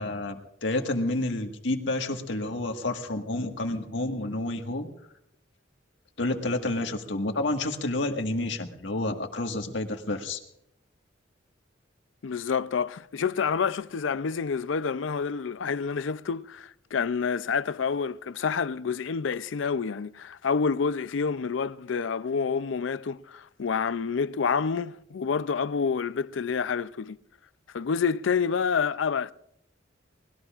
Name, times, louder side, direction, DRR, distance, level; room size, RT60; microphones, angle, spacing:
voice 1, 0.0-4.9 6.2-10.4, left 2 dB, 70° left, 1.7 m, -29 dB
voice 2, 12.2-27.2 27.7-29.3, left 5 dB, 90° left, 0.5 m, -28 dB
25.0 x 20.0 x 2.5 m
head